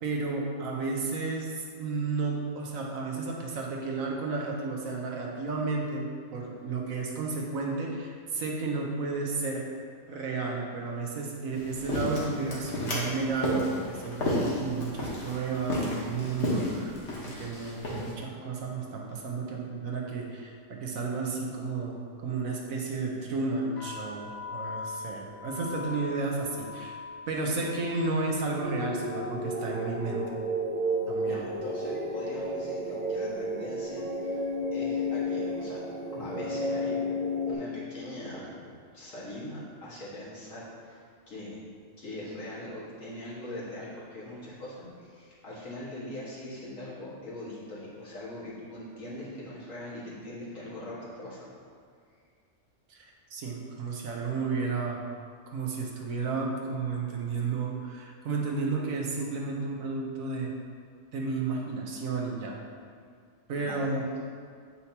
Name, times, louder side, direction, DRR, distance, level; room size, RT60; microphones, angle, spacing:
voice 1, 0.0-9.7 10.1-17.0 17.3-27.0 27.3-30.4 31.1-31.4 52.9-53.0 53.3-55.0 55.5-60.5 61.1-62.6 63.5-64.0, right 3 dB, 85° right, 0 dB, 1.3 m, -32 dB
sound 1, 11.5-18.1, left 1 dB, 55° left, 1.5 m, -32 dB
sound 2, 23.7-31.6 31.9-32.5 33.2-33.5 33.7-35.2, left 4 dB, 40° left, 1.9 m, -44 dB
sound 3, 28.6-37.5, equal, 35° right, 0.8 m, -32 dB
voice 2, 31.2-34.4 34.7-35.8 36.1-37.0 37.5-38.5 38.9-41.6 42.0-51.5 63.6-63.9, left 1 dB, 75° left, -8 dB, 2.2 m, -41 dB
8.1 x 5.6 x 2.9 m, 2.1 s
omnidirectional pair, 1.4 m